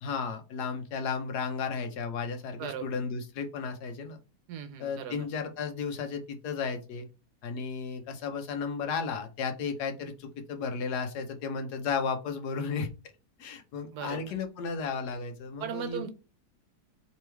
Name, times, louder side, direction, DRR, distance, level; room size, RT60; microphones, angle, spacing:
voice 1, 0.0-4.2 4.8-7.1 7.4-12.9 13.4-16.1, left 5 dB, 85° left, 6 dB, 1.3 m, -34 dB
voice 2, 4.5-5.2 13.9-14.2 15.6-16.1, right 8 dB, 85° right, 8 dB, 1.2 m, -37 dB
3.5 x 3.1 x 3.4 m, 0.30 s
omnidirectional pair, 1.7 m